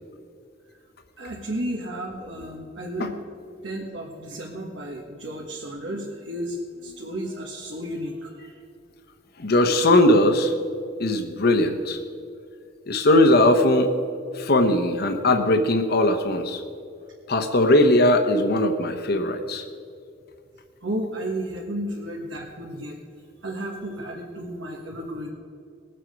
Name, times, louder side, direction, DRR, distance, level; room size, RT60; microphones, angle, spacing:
voice 1, 1.2-3.2 3.6-8.6 20.8-23.0 23.4-25.3, right 1 dB, 80° right, -2 dB, 1.6 m, -33 dB
voice 2, 9.4-10.5 11.0-12.0 12.9-13.9 14.3-16.6 17.3-19.6, left 1 dB, 55° left, 5 dB, 0.9 m, -19 dB
20.5 x 7.7 x 5.1 m, 2.5 s
head